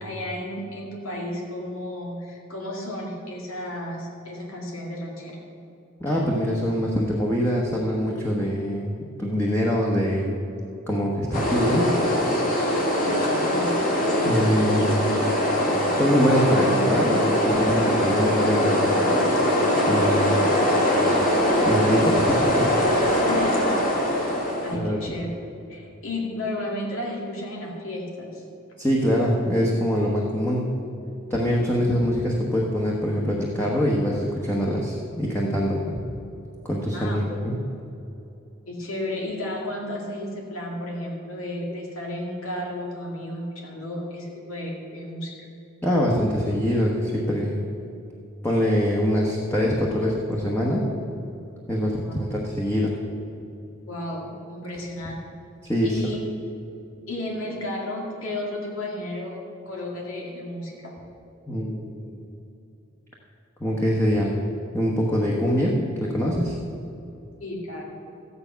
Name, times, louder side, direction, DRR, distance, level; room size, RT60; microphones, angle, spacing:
voice 1, 0.0-5.4 13.4-13.8 14.8-15.2 23.2-23.6 24.6-25.3 25.7-28.4 36.9-37.2 38.7-45.5 52.0-52.1 53.9-55.1 55.8-56.2 57.1-59.4 59.7-60.9 67.4-67.8, left 1 dB, 85° left, -1 dB, 2.1 m, -33 dB
voice 2, 6.0-10.4 10.9-11.9 14.2-15.0 15.9-18.8 19.8-20.4 21.6-22.7 23.0-23.2 24.8-25.0 28.8-30.7 31.3-35.8 36.6-37.5 45.8-47.6 48.4-50.9 51.7-52.9 55.6-56.0 61.5-62.2 63.6-64.4 64.7-66.6, equal, 10° left, -3 dB, 1.2 m, -24 dB
sound 1, 11.3-24.8, equal, 40° left, 2.2 m, -22 dB
13.5 x 9.7 x 5.8 m, 2.8 s
head